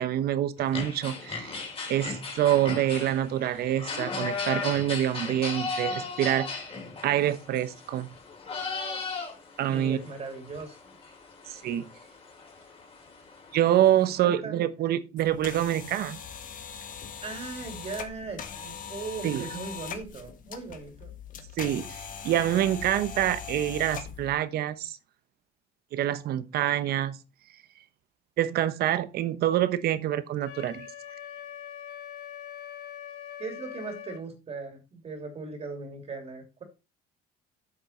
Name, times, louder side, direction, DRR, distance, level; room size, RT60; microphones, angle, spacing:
voice 1, 0.0-1.6 1.9-6.6 7.0-8.1 9.6-10.0 11.5-11.8 13.5-16.2 19.2-19.4 21.6-25.0 25.9-27.2 28.4-30.9, right 12 dB, 65° right, 0.9 m, -26 dB
sound 1, 0.6-14.2, left 4 dB, 35° left, 3.2 m, -37 dB
voice 2, 9.7-10.8 14.2-14.6 17.2-21.1 33.4-36.6, right 4 dB, 40° right, 2.7 m, -38 dB
sound 2, 15.2-24.3, left 7 dB, 50° left, 1.4 m, -41 dB
Wind instrument woodwind instrument, 30.4-34.2, left 10 dB, 80° left, 1.6 m, -42 dB
8.1 x 5.8 x 4.3 m
cardioid pair, 110°, 17 cm